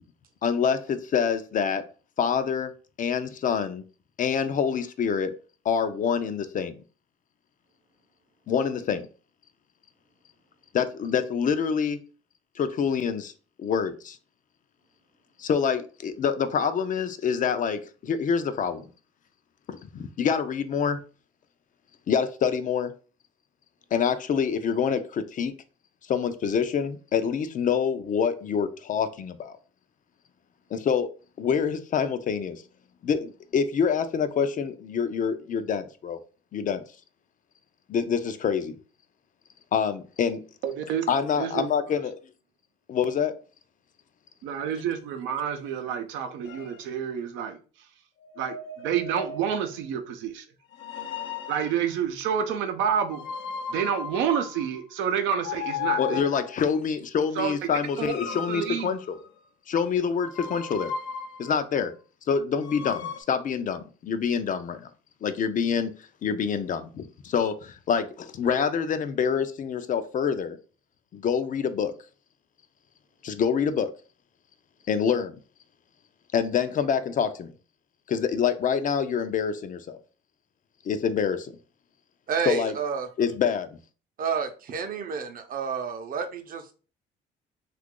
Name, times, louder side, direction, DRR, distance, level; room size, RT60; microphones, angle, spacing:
voice 1, 0.4-1.8 2.2-2.7 3.0-3.8 4.2-5.3 5.6-6.8 8.5-9.1 10.7-12.0 12.6-13.3 13.6-14.2 15.4-18.8 19.7-21.0 22.1-22.9 23.9-25.5 26.1-29.6 30.7-31.1 31.4-32.6 33.0-36.2 36.5-36.8 37.9-38.8 39.7-40.4 41.1-42.1 42.9-43.3 56.0-59.2 59.7-60.9 61.4-61.9 62.3-64.9 65.2-65.9 66.2-70.6 71.1-71.9 73.2-73.9 74.9-75.4 76.3-77.5 78.1-80.0 80.8-81.5 82.5-82.7 83.2-83.7, left 7 dB, 45° left, 0.5 m, -26 dB
voice 2, 40.6-41.1 41.4-41.7 44.4-47.6 48.4-50.5 51.5-53.2 53.7-56.3 57.3-57.7 58.0-58.9, right 8 dB, 85° right, 0.6 m, -29 dB
sound 1, 46.5-46.8 48.2-49.8 50.7-51.9 53.1-54.8 55.4-56.6 57.8-59.4 60.2-61.6 62.6-63.2, left 7 dB, 85° left, 0.6 m, -36 dB
voice 3, 82.3-83.1 84.2-86.7, right 6 dB, 50° right, 0.7 m, -30 dB
2.8 x 2.4 x 3.7 m
cardioid pair, 90°, 19 cm